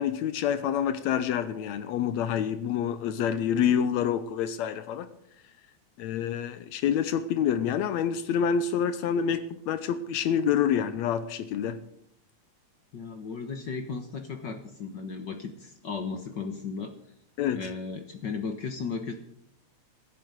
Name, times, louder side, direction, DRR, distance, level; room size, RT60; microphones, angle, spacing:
voice 1, 0.0-5.1 6.0-11.8 17.4-17.7, left 8 dB, 75° left, 2.0 m, -27 dB
voice 2, 12.9-16.9 17.5-19.1, left 5 dB, 55° left, 1.3 m, -35 dB
15.5 x 9.1 x 8.0 m
omnidirectional pair, 3.3 m